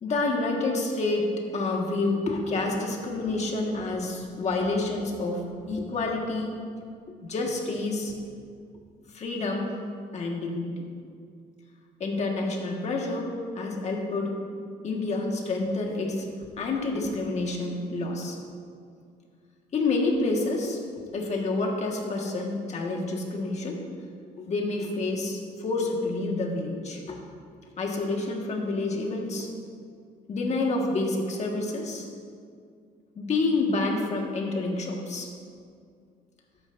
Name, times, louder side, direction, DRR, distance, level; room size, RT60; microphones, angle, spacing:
voice 1, 0.0-6.6 7.2-8.1 9.1-9.8 10.1-10.8 12.0-13.3 13.6-14.4 14.8-16.2 16.6-18.4 19.7-20.8 21.1-23.8 24.4-27.2 27.8-29.5 30.3-32.1 33.2-35.3, left 2 dB, 40° left, 0 dB, 1.6 m, -28 dB
12.5 x 9.3 x 2.6 m, 2.3 s
cardioid pair, 110°, 17 cm